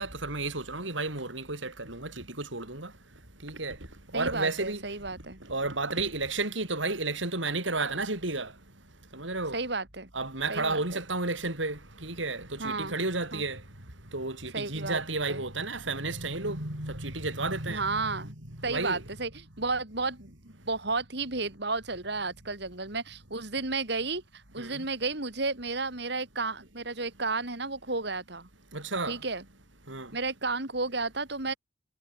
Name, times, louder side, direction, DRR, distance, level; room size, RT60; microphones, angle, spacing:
voice 1, 0.0-2.9 3.4-3.8 4.1-4.8 5.5-8.5 9.1-9.6 10.1-13.6 14.1-18.2 18.6-19.0 24.6-24.8 28.7-29.2 29.9-30.1, right 3 dB, 80° right, 7.1 m, -32 dB
voice 2, 4.1-5.4 9.5-10.1 10.5-10.8 12.6-13.0 13.3-13.4 14.5-15.0 15.3-15.4 17.7-18.3 18.6-28.5 29.1-29.4 30.1-31.5, right 3 dB, 60° right, 3.7 m, -32 dB
head